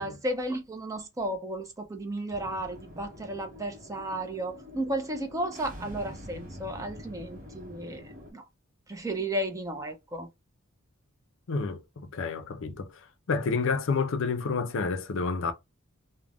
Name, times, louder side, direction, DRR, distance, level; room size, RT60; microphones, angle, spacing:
voice 1, 0.0-8.0 8.3-8.4 8.9-10.3, right 1 dB, 15° right, 0.4 m, -33 dB
sound 1, 2.3-8.3, equal, 40° right, 0.7 m, -45 dB
voice 2, 11.5-12.9 13.3-15.5, left 4 dB, 60° left, 0.5 m, -29 dB
2.4 x 2.1 x 3.3 m
head